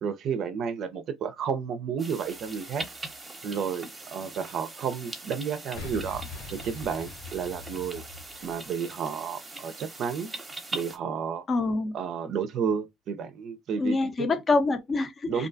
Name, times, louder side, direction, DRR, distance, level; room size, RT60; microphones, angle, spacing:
voice 1, 0.0-2.9 3.4-6.2 6.5-8.0 8.4-10.3 10.7-11.4 11.9-14.3 15.3-15.5, right 7 dB, 55° right, 0.4 m, -31 dB
sound 1, 2.0-11.0, right 2 dB, 20° right, 0.7 m, -41 dB
Boom, 5.7-8.7, left 4 dB, 80° left, 1.2 m, -42 dB
voice 2, 11.5-11.9 13.8-15.5, left 3 dB, 35° left, 0.6 m, -26 dB
2.5 x 2.2 x 2.5 m
supercardioid pair, 80°, 0 cm